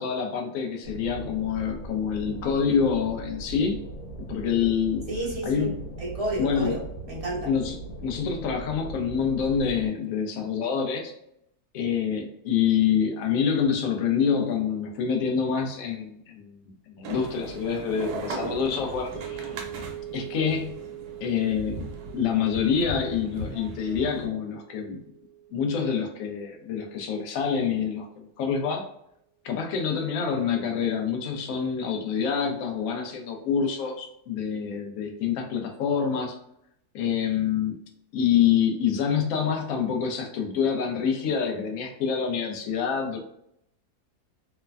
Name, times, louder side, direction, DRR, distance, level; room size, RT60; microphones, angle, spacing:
voice 1, 0.0-3.8 4.3-5.0 5.4-5.8 6.4-6.8 7.5-11.1 11.7-19.4 20.1-20.8 21.2-21.8 22.1-25.0 25.5-28.9 29.4-36.4 36.9-37.8 38.1-43.2, left 7 dB, 65° left, 2 dB, 0.9 m, -26 dB
sound 1, 0.8-9.9, right 1 dB, 85° left, 1.2 m, -39 dB
voice 2, 5.1-5.7 6.0-7.5, right 1 dB, 55° right, -4 dB, 0.4 m, -31 dB
sound 2, 17.0-24.3, right 1 dB, 75° right, 1.1 m, -38 dB
sound 3, 19.1-27.4, right 12 dB, 45° left, 1.1 m, -43 dB
3.2 x 2.1 x 2.3 m, 0.75 s
omnidirectional pair, 1.8 m